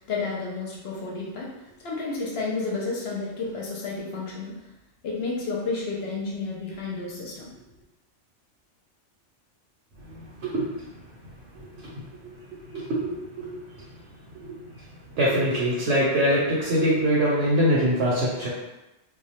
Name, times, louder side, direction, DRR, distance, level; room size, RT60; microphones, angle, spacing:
voice 1, 0.0-4.5 5.0-7.5, left 3 dB, 65° left, -3 dB, 0.7 m, -31 dB
voice 2, 10.0-10.9 11.5-11.9 12.2-13.8 14.3-14.8 15.1-18.5, equal, 65° right, -5 dB, 0.8 m, -25 dB
2.2 x 2.0 x 2.8 m, 0.98 s
omnidirectional pair, 1.3 m